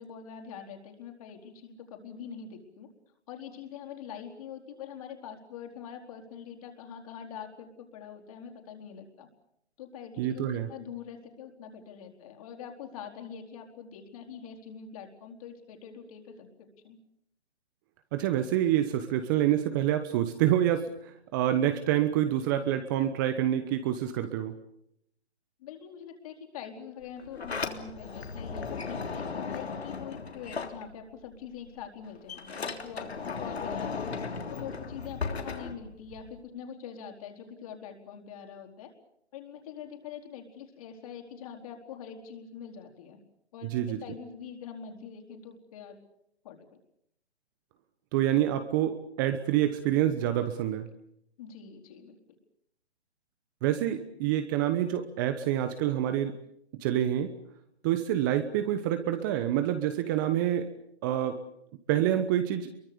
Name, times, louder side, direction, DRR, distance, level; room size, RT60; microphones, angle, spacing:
voice 1, 0.0-2.9 3.3-9.3 9.8-17.0 25.6-34.1 34.5-38.9 39.3-43.2 43.5-46.0 46.4-46.7 51.4-52.2, left 7 dB, 35° left, 4 dB, 4.4 m, -44 dB
voice 2, 10.2-10.7 18.1-24.5 43.6-44.0 48.1-50.9 53.6-56.3 56.8-57.3 57.8-60.7 61.0-61.4 61.9-62.7, right 11 dB, 20° right, 9 dB, 1.1 m, -27 dB
Sliding door, 27.0-31.4 31.7-36.4, left 5 dB, 70° left, 3.5 m, -36 dB
27.5 x 23.5 x 6.9 m, 0.74 s
figure-of-eight pair, 150°, 33 cm